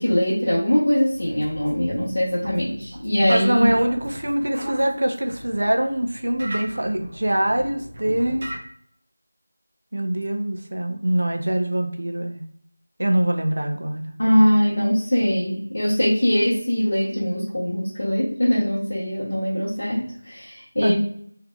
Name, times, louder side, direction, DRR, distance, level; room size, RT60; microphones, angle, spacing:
voice 1, 0.0-3.6 14.2-20.9, equal, 65° left, -9 dB, 1.2 m, -22 dB
sound 1, 1.1-8.6, equal, 45° right, 0.9 m, -38 dB
voice 2, 3.3-8.5 9.9-12.4 13.0-14.0 20.8-20.9, right 1 dB, 70° right, 4 dB, 0.6 m, -23 dB
3.3 x 3.3 x 2.3 m, 0.65 s
figure-of-eight pair, 175°, 0 cm